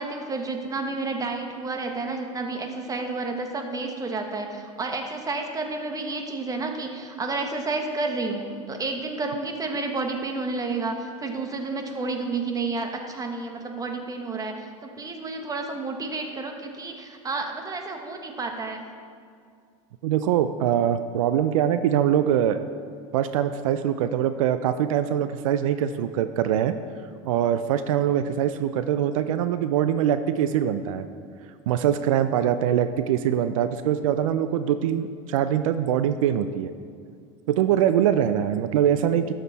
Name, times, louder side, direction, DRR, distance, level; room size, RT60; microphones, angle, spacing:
voice 1, 0.0-18.9, right 3 dB, 20° right, 4 dB, 1.3 m, -30 dB
voice 2, 20.0-22.6 23.1-26.7 27.2-31.0 31.7-36.7 37.5-39.3, right 10 dB, 85° right, 11 dB, 0.4 m, -23 dB
12.0 x 6.6 x 4.1 m, 2.2 s
supercardioid pair, 100°, 17 cm